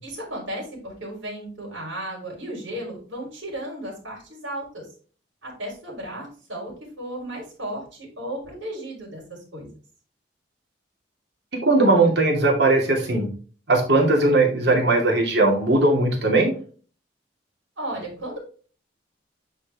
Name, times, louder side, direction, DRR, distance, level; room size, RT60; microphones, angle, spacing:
voice 1, 0.0-4.9 5.4-9.7 17.8-18.4, right 1 dB, 90° right, -3 dB, 3.8 m, -34 dB
voice 2, 11.6-13.3 13.7-16.5, right 2 dB, 60° right, 1 dB, 2.5 m, -19 dB
9.3 x 4.6 x 3.5 m, 0.40 s
head